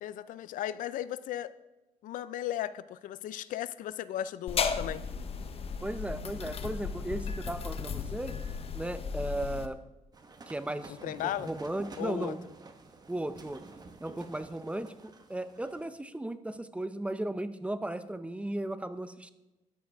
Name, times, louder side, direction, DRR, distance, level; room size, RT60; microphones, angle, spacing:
voice 1, 0.0-1.5 2.0-5.0 11.0-11.5 12.0-12.3, left 12 dB, 80° left, 16 dB, 0.4 m, -36 dB
sound 1, 4.5-9.7, left 6 dB, 45° left, 0.7 m, -35 dB
voice 2, 5.8-8.4 8.7-9.8 10.5-12.4 13.1-13.6 14.0-19.3, right 1 dB, 10° right, 11 dB, 0.6 m, -36 dB
sound 2, 10.1-15.9, right 3 dB, 30° right, 1.1 m, -50 dB
13.0 x 8.9 x 3.5 m, 1.0 s
cardioid pair, 105°, 13 cm